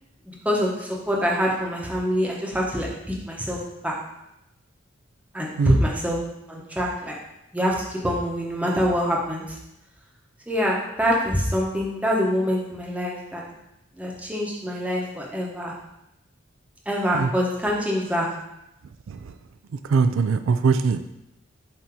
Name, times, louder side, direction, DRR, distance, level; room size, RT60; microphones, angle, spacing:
voice 1, 0.3-4.0 5.3-6.2 6.5-7.2 7.5-9.6 10.5-13.4 14.0-15.7 16.9-18.3, equal, 5° right, -3 dB, 0.9 m, -25 dB
voice 2, 19.8-21.0, right 5 dB, 90° right, 10 dB, 0.4 m, -21 dB
7.4 x 2.8 x 4.6 m, 0.88 s
head